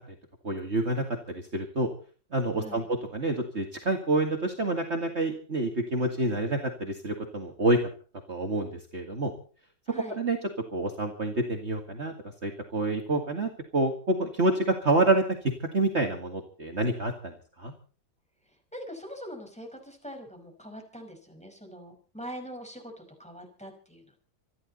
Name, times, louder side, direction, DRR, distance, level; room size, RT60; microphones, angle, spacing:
voice 1, 0.4-1.9 2.3-7.8 8.3-9.3 10.2-10.4 10.7-12.1 12.4-15.2 15.7-17.3 17.6-17.7, right 2 dB, 40° right, 3 dB, 2.3 m, -27 dB
voice 2, 18.5-24.2, equal, 5° left, 3 dB, 5.1 m, -43 dB
26.5 x 11.5 x 4.2 m, 0.41 s
omnidirectional pair, 1.8 m